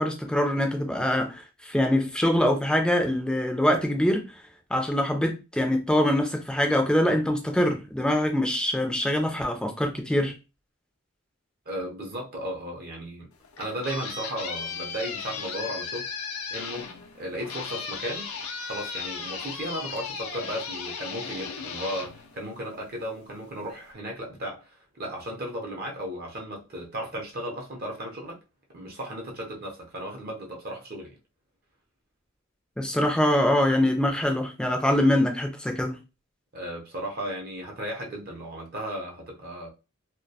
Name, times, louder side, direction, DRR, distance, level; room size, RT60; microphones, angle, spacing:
voice 1, 0.0-4.2 4.7-10.3 32.8-36.0, left 1 dB, 5° left, 0.3 m, -24 dB
voice 2, 11.7-13.3 13.6-16.1 16.5-16.9 17.2-18.3 18.7-28.4 28.7-31.2 36.5-39.7, equal, 45° right, 0.6 m, -35 dB
sound 1, 13.3-23.0, left 5 dB, 85° left, 0.4 m, -36 dB
2.3 x 2.1 x 2.7 m
head